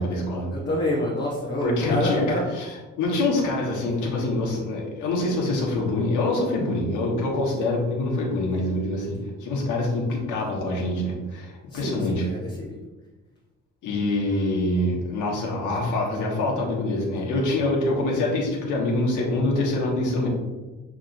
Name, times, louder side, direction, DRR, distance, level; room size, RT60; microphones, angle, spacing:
voice 1, 0.0-0.5 1.6-12.2 13.8-20.3, left 2 dB, 80° left, -2 dB, 1.2 m, -25 dB
voice 2, 0.5-2.4 11.7-12.8, left 1 dB, 35° left, -4 dB, 0.9 m, -27 dB
5.8 x 2.9 x 2.6 m, 1.2 s
cardioid pair, 90°, 30 cm